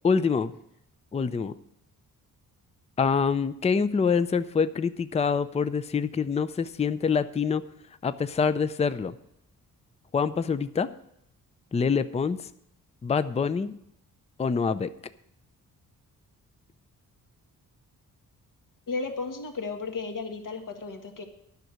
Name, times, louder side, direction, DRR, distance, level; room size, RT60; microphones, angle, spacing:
voice 1, 0.0-0.5 1.1-1.5 3.0-7.6 8.0-9.1 10.1-10.9 11.7-12.4 13.0-13.7 14.4-14.9, left 5 dB, 20° left, 14 dB, 0.4 m, -25 dB
voice 2, 18.9-21.2, left 4 dB, 60° left, 4 dB, 1.8 m, -34 dB
10.5 x 6.4 x 8.0 m, 0.76 s
wide cardioid pair, 120°, 35 cm